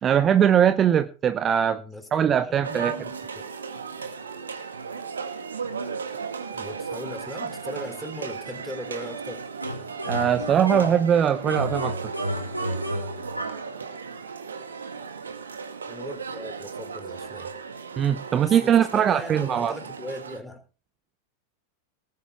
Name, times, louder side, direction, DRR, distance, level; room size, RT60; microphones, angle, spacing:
voice 1, 0.0-1.8 2.1-3.0 10.1-12.0 18.0-19.7, right 9 dB, 25° right, 11 dB, 0.9 m, -21 dB
voice 2, 1.8-2.1 2.5-3.4 6.5-9.4 15.9-17.5 18.4-20.6, left 1 dB, 5° left, 6 dB, 3.9 m, -39 dB
sound 1, 2.6-20.4, right 5 dB, 70° right, 2.0 m, -36 dB
sound 2, 9.6-11.1 11.5-13.7, equal, 90° right, 3.3 m, -31 dB
19.0 x 9.4 x 4.4 m, 0.36 s
figure-of-eight pair, 90°, 0 cm